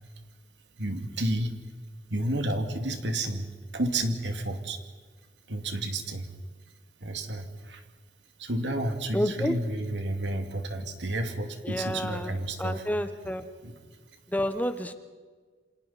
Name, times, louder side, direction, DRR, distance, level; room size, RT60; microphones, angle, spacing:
voice 1, 0.8-1.5 2.1-3.5 3.7-4.8 5.5-6.3 7.0-7.8 8.4-12.9 13.6-13.8, right 1 dB, 85° right, 5 dB, 2.4 m, -31 dB
voice 2, 9.1-9.5 11.6-13.4 14.3-14.9, equal, 10° left, 9 dB, 1.0 m, -30 dB
29.0 x 26.0 x 4.2 m, 1.5 s
head